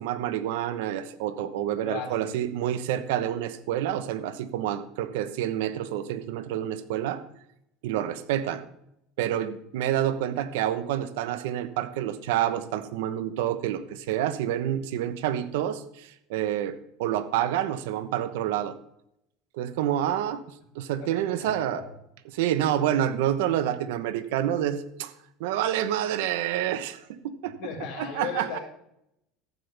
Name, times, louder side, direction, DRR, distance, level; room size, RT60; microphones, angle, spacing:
voice 1, 0.0-7.2 7.8-8.6 9.2-18.7 19.5-20.4 20.7-21.8 22.3-25.1 25.4-27.5 28.0-28.6, right 11 dB, 85° right, 12 dB, 1.1 m, -28 dB
voice 2, 1.7-2.3 21.0-21.9 27.6-28.6, left 6 dB, 60° left, -4 dB, 4.6 m, -37 dB
14.0 x 12.0 x 3.5 m, 0.78 s
supercardioid pair, 130°, 0 cm